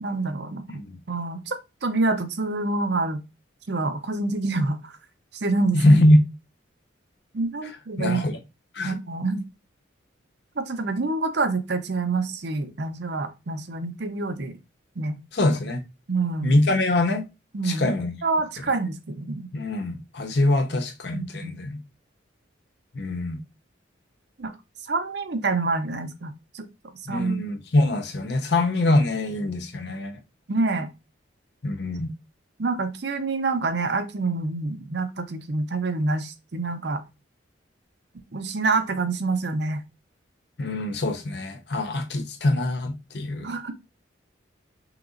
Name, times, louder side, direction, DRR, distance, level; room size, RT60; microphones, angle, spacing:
voice 1, 0.0-0.8 1.1-1.6 1.8-3.2 3.7-4.9 5.4-5.8 7.3-8.2 8.8-9.4 10.6-14.5 15.0-15.2 16.1-16.6 17.5-17.9 18.2-19.5 21.1-21.5 24.4-24.5 24.9-26.7 27.1-27.5 30.5-30.9 32.6-37.0 38.3-39.8 43.4-43.7, right 3 dB, 55° right, 0.6 m, -27 dB
voice 2, 5.7-6.2 8.0-8.4 8.8-9.0 15.3-15.8 16.4-17.3 17.6-18.2 19.5-21.8 22.9-23.4 27.1-30.2 31.6-32.1 40.6-43.5, left 1 dB, 55° left, 0.7 m, -23 dB
5.9 x 3.0 x 2.5 m
head